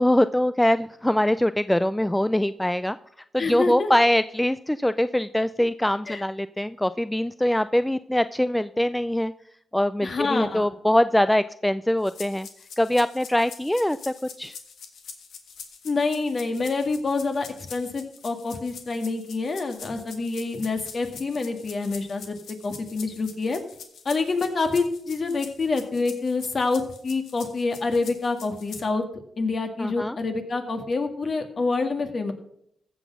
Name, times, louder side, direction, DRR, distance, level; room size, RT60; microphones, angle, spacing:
voice 1, 0.0-3.0 3.3-9.3 9.7-12.5 12.8-14.6 29.8-30.2, left 1 dB, 5° left, 13 dB, 0.3 m, -23 dB
voice 2, 3.4-3.9 6.1-6.2 10.0-10.7 15.8-23.6 24.0-29.0 29.4-32.3, left 3 dB, 50° left, 6 dB, 1.8 m, -27 dB
sound 1, 12.0-28.9, left 6 dB, 85° left, 1.4 m, -44 dB
15.0 x 6.1 x 5.9 m, 0.71 s
cardioid pair, 75°, 0 cm